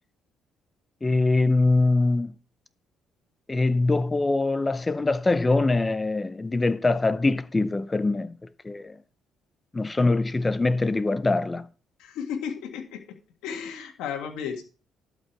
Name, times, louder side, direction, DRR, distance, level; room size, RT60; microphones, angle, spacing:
voice 1, 1.0-2.3 3.5-8.3 8.6-9.0 9.7-11.6, left 3 dB, 15° left, 0.5 m, -23 dB
voice 2, 12.0-13.2 13.4-14.6, left 7 dB, 90° left, 1.7 m, -34 dB
12.0 x 5.2 x 4.6 m
cardioid pair, 120°, 0 cm